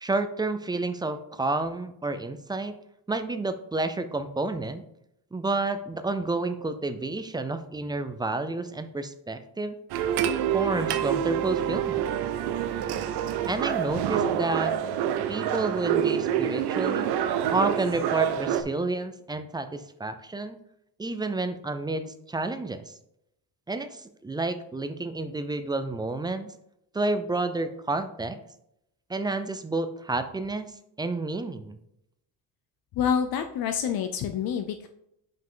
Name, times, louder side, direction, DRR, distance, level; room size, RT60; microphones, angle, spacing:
voice 1, 0.0-2.8 3.1-4.8 5.3-9.8 10.5-12.1 13.5-14.7 15.3-17.1 17.5-20.6 21.0-22.9 23.7-26.5 26.9-28.4 29.1-30.7 31.0-31.8, right 2 dB, 10° right, 10 dB, 0.3 m, -30 dB
sound 1, 9.9-18.6, right 9 dB, 85° right, 0.7 m, -27 dB
voice 2, 32.9-34.9, left 7 dB, 65° left, 7 dB, 0.6 m, -27 dB
5.7 x 5.3 x 3.7 m, 0.79 s
cardioid pair, 135°, 39 cm